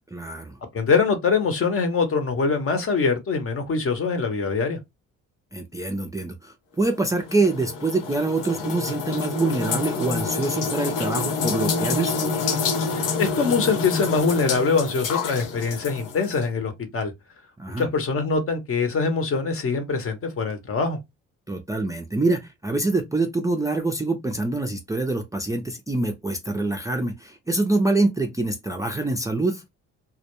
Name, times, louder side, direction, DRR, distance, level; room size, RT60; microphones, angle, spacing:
voice 1, 0.1-0.6 5.5-12.3 17.6-17.9 21.5-29.6, right 2 dB, 10° right, 0.4 m, -25 dB
voice 2, 0.7-4.8 12.9-17.1 17.8-21.0, left 4 dB, 45° left, 0.8 m, -23 dB
sound 1, 6.8-16.4, left 4 dB, 90° left, 0.6 m, -28 dB
2.2 x 2.1 x 2.9 m
cardioid pair, 90°, 30 cm